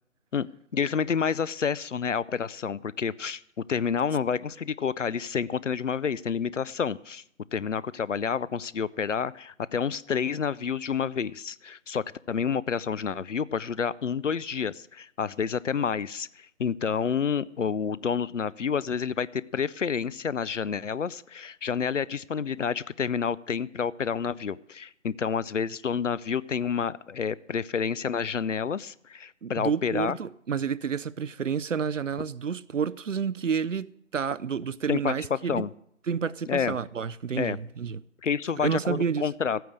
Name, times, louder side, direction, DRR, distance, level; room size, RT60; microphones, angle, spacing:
voice 1, 0.3-3.4 3.7-7.2 7.5-30.2 34.9-35.7 36.5-36.8 37.4-37.6 38.2-39.6, left 6 dB, 70° left, 0.6 m, -29 dB
voice 2, 29.4-35.7 36.1-38.0 38.6-39.3, right 6 dB, 70° right, 0.6 m, -30 dB
14.5 x 9.2 x 6.4 m
figure-of-eight pair, 160°, 39 cm